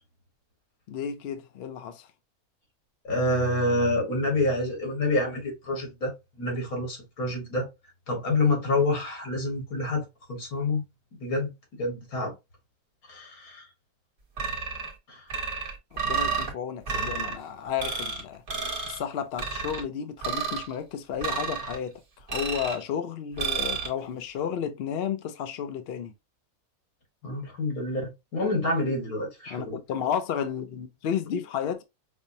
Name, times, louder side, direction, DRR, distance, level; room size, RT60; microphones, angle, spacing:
voice 1, 0.9-2.1 15.9-18.4 18.9-22.0 22.3-26.1 29.5-31.8, left 8 dB, 60° left, 0.6 m, -32 dB
voice 2, 3.0-7.7 8.1-10.0 10.3-10.8 11.2-12.3 13.1-13.7 15.1-15.2 27.2-29.8, left 2 dB, 85° left, 2.0 m, -27 dB
sound 1, 14.4-14.9 15.3-16.5 16.9-17.3 17.8-18.2 18.5-19.0 19.4-19.8 20.2-20.7 21.2-21.8 22.3-22.8 23.4-23.9, right 5 dB, 40° right, 1.1 m, -30 dB
5.2 x 2.1 x 2.6 m
omnidirectional pair, 1.5 m